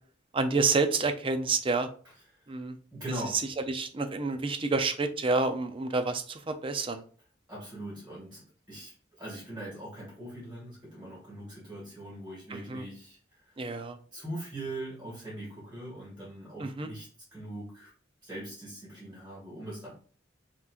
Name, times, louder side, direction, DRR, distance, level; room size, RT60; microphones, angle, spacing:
voice 1, 0.3-1.9 2.5-2.8 3.3-3.4 3.7-7.0 12.5-12.8 13.6-14.0 16.6-16.9, right 3 dB, 30° right, 8 dB, 0.5 m, -29 dB
voice 2, 2.9-3.4 7.5-13.6 14.1-17.9 18.2-19.9, right 1 dB, 10° right, -6 dB, 2.1 m, -41 dB
5.7 x 3.0 x 2.5 m, 0.43 s
head